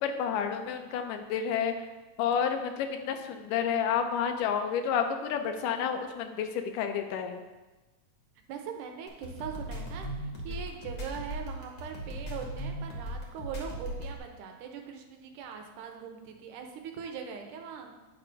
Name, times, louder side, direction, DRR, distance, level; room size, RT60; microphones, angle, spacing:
voice 1, 0.0-1.7 2.2-7.4, left 7 dB, 85° left, 7 dB, 2.2 m, -30 dB
voice 2, 8.5-17.9, right 7 dB, 85° right, 4 dB, 2.2 m, -41 dB
sound 1, 9.1-14.2, equal, 50° left, 1.4 m, -37 dB
9.2 x 3.4 x 5.2 m, 1.2 s
omnidirectional pair, 3.7 m